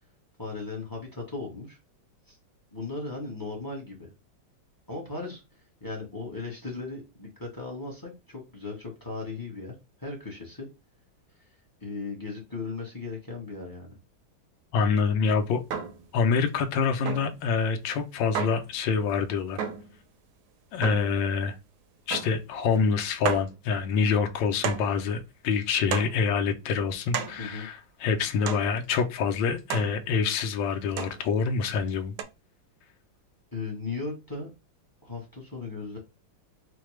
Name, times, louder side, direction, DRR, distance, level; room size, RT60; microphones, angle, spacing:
voice 1, 0.4-1.8 2.3-2.4 2.7-4.1 4.9-5.4 5.8-9.7 10.0-10.7 11.8-13.9 27.4-27.7 33.5-34.5 35.0-36.0, left 3 dB, 20° left, 0.5 m, -37 dB
voice 2, 14.7-15.6 16.1-19.6 20.7-21.5 22.1-32.1, left 5 dB, 75° left, 1.3 m, -26 dB
sound 1, 15.7-16.1 17.1-17.4 18.3-18.7 19.6-19.9 20.8-21.2 22.1-22.5 22.8-22.9 23.3-23.5 24.6-25.0 25.9-26.2 27.1-27.5 28.5-28.7 29.7-30.0 31.0-31.2 32.2-32.3, right 7 dB, 75° right, 0.9 m, -32 dB
4.8 x 2.2 x 3.1 m
omnidirectional pair, 2.2 m